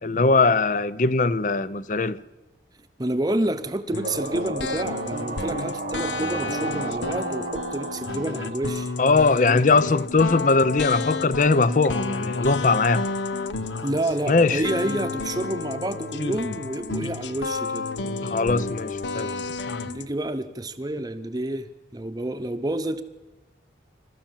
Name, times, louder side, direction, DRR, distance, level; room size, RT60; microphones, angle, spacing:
voice 1, 0.0-2.2 9.0-13.1 14.3-14.6 18.2-19.3, left 3 dB, 45° left, 0.6 m, -20 dB
voice 2, 3.0-8.9 13.8-17.9 19.9-23.0, right 1 dB, 20° right, 0.8 m, -29 dB
sound 1, 3.9-20.1, left 3 dB, 90° left, 0.8 m, -31 dB
sound 2, 4.0-9.8, right 3 dB, 50° right, 0.9 m, -34 dB
27.0 x 13.0 x 7.3 m
head